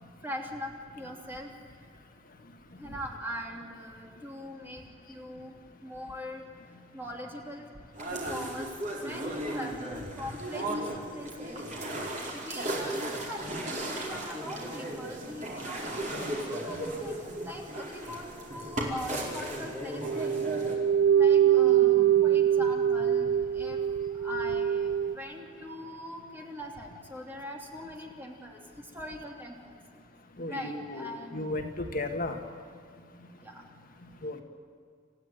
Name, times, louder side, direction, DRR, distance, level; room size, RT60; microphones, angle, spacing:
voice 1, 0.0-1.5 2.8-4.8 5.1-5.6 5.8-6.4 6.9-7.7 8.1-8.7 9.0-11.7 12.3-20.3 21.1-23.8 24.1-29.7 30.5-31.4 33.4-33.6, left 1 dB, 10° right, 0 dB, 3.0 m, -42 dB
sound 1, 7.9-20.8, right 1 dB, 40° right, 4.6 m, -36 dB
sound 2, 20.0-25.1, right 10 dB, 80° right, 0.8 m, -24 dB
voice 2, 30.4-32.4 34.2-34.4, left 2 dB, 45° left, 4 dB, 1.7 m, -34 dB
29.0 x 15.0 x 9.3 m, 2.2 s
head